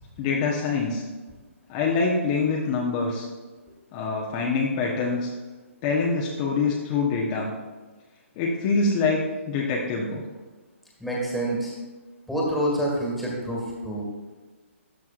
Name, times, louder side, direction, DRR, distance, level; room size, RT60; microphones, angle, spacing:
voice 1, 0.2-1.0 1.7-3.3 3.9-5.3 5.8-7.5 8.4-9.2 9.5-10.2, left 4 dB, 30° left, -2 dB, 1.1 m, -25 dB
voice 2, 11.0-11.7 12.3-14.1, right 1 dB, ahead, -3 dB, 1.9 m, -27 dB
13.0 x 6.0 x 2.5 m, 1.3 s
hypercardioid pair, 140°, 7 cm